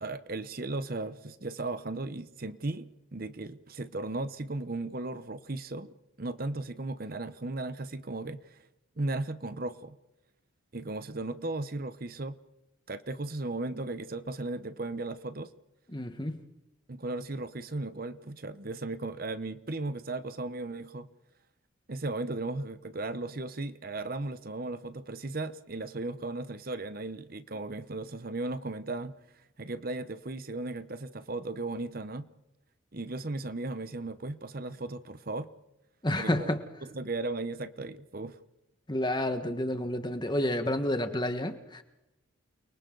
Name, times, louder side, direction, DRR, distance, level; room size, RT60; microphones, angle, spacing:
voice 1, 0.0-8.6 9.0-10.0 10.7-12.4 12.9-15.5 16.9-21.1 21.9-29.2 29.6-32.3 32.9-35.5 36.2-36.5 36.8-38.4, right 2 dB, 45° right, 12 dB, 0.9 m, -36 dB
voice 2, 15.9-16.4 36.0-36.6 38.9-41.8, left 1 dB, 20° left, 8 dB, 1.5 m, -30 dB
29.5 x 24.0 x 4.0 m, 0.92 s
head